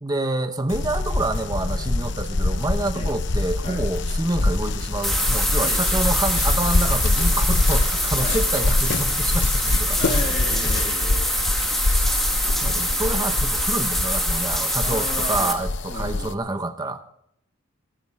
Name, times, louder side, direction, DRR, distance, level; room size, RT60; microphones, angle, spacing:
voice 1, 0.0-10.3 10.6-10.7 11.8-17.0, right 2 dB, 20° right, 8 dB, 0.9 m, -28 dB
sound 1, 0.7-16.3, left 2 dB, 55° left, 0.8 m, -24 dB
sound 2, 5.0-15.5, equal, ahead, 1.8 m, -25 dB
voice 2, 9.9-11.3 14.8-15.6 15.9-16.4, left 1 dB, 30° left, 1 dB, 2.5 m, -33 dB
22.0 x 14.0 x 3.5 m, 0.72 s
head